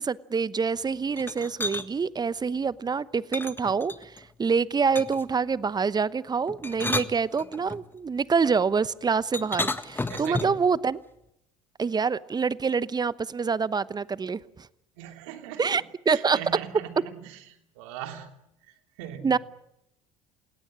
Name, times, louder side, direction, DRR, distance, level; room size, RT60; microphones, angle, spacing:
voice 1, 0.0-11.0 11.8-14.4 15.6-16.4 19.2-19.4, right 5 dB, 25° right, 1.0 m, -26 dB
sound 1, 1.2-1.9 3.3-4.2 4.9-5.3 6.5-7.8 9.3-10.7, left 2 dB, 10° left, 1.6 m, -32 dB
voice 2, 10.1-10.5 15.0-18.3 18.7-19.4, right 10 dB, 75° right, 3.0 m, -41 dB
29.5 x 17.5 x 10.0 m
hypercardioid pair, 70°, 17 cm